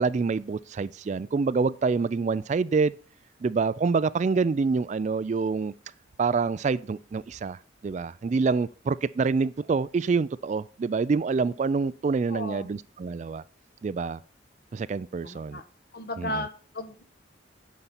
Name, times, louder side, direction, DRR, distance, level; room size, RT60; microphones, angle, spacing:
voice 1, 0.0-2.9 3.4-5.7 6.2-7.6 7.8-13.4 13.8-14.2 14.7-15.6 16.2-16.3, right 4 dB, 40° right, 0.3 m, -26 dB
voice 2, 12.3-12.7 15.2-15.6 15.9-17.0, left 1 dB, 55° left, 1.2 m, -35 dB
9.7 x 4.3 x 7.0 m
head